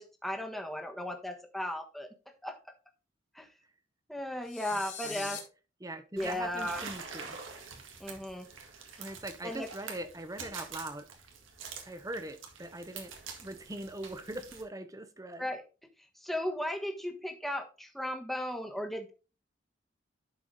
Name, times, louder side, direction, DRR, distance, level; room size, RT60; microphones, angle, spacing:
voice 1, 0.0-2.1 2.4-2.6 3.3-3.5 4.1-5.4 6.1-6.8 8.0-8.5 9.4-9.7 15.4-15.6 16.2-19.1, left 1 dB, ahead, 1.2 m, -36 dB
sound 1, 4.4-5.4, left 7 dB, 65° left, 2.7 m, -41 dB
voice 2, 4.7-5.4 5.8-7.4 9.0-11.1 11.9-13.1 13.4-15.5, right 1 dB, 20° right, 0.8 m, -42 dB
sound 2, 6.2-14.6, right 5 dB, 85° right, 1.9 m, -46 dB
11.0 x 4.8 x 3.9 m
head